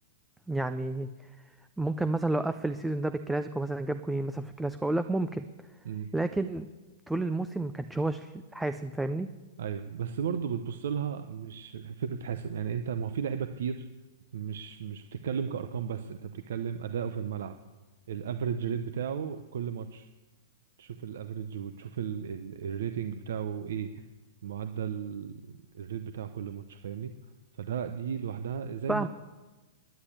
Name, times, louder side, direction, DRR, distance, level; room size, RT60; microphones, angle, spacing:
voice 1, 0.5-1.1 1.8-5.4 6.1-6.7 7.1-9.3 28.9-29.1, right 2 dB, 5° right, 10 dB, 0.3 m, -30 dB
voice 2, 9.6-13.8 14.3-17.6 18.1-20.1 20.8-24.0 24.4-27.1 27.5-29.1, right 7 dB, 65° right, 9 dB, 0.7 m, -34 dB
10.5 x 10.0 x 8.8 m, 1.2 s
hypercardioid pair, 170°, 0 cm